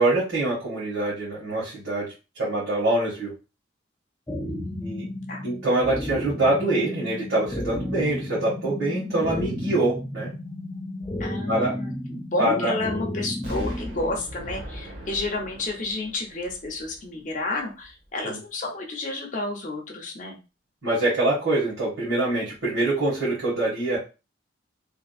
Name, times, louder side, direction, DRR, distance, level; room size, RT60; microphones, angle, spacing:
voice 1, 0.0-2.1 2.4-3.3 4.8-5.1 5.4-10.3 11.5-11.7 12.4-12.8 18.3-18.4 20.8-24.0, right 2 dB, 85° right, -9 dB, 1.8 m, -24 dB
sound 1, 4.3-14.2, left 1 dB, 10° left, 0.3 m, -33 dB
voice 2, 4.4-5.0 5.3-5.4 11.2-20.4, left 2 dB, 40° left, 1 dB, 0.8 m, -31 dB
Explosion, 13.4-17.4 17.8-17.9, equal, 60° right, 1.1 m, -39 dB
3.6 x 2.7 x 2.4 m, 0.30 s
head